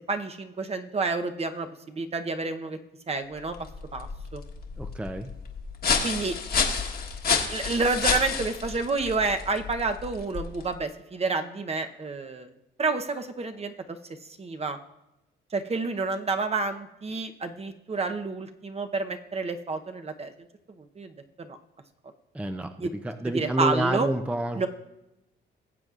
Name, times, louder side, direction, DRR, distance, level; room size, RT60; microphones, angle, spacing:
voice 1, 0.1-2.8 3.1-3.6 3.9-4.4 6.0-6.4 7.5-12.5 12.8-13.7 14.4-14.8 15.5-20.3 21.0-21.1 21.4-21.6 22.8-22.9 23.3-24.1 24.6-24.7, right 3 dB, 30° right, 7 dB, 0.8 m, -29 dB
sound 1, 3.4-10.8, left 5 dB, 50° left, 1.4 m, -30 dB
voice 2, 4.8-5.3 22.3-24.7, right 1 dB, 5° right, 6 dB, 0.5 m, -29 dB
19.0 x 7.6 x 2.5 m, 0.92 s
cardioid pair, 90°, 20 cm